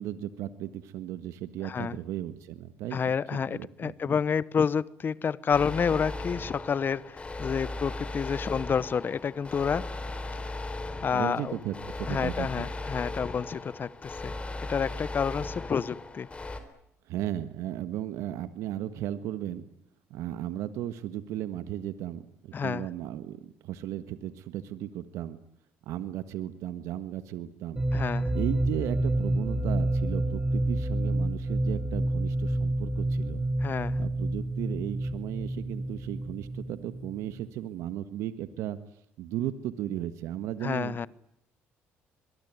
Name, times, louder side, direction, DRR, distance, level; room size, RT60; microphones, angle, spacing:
voice 1, 0.0-3.0 3.5-3.9 11.1-12.7 17.1-19.7 20.1-25.4 25.8-27.8 28.3-33.4 34.0-38.8 39.2-41.1, right 12 dB, 80° right, 1.5 m, -35 dB
voice 2, 1.6-2.0 2.9-9.8 11.0-11.6 12.1-14.3 14.7-16.3 22.5-22.9 27.9-28.3 33.6-34.0 40.6-41.1, left 6 dB, 40° left, 0.9 m, -29 dB
sound 1, 5.5-16.6, left 2 dB, 25° left, 4.0 m, -37 dB
sound 2, 27.8-37.4, right 1 dB, 15° right, 6.1 m, -29 dB
23.5 x 22.5 x 9.4 m
supercardioid pair, 75°, 5 cm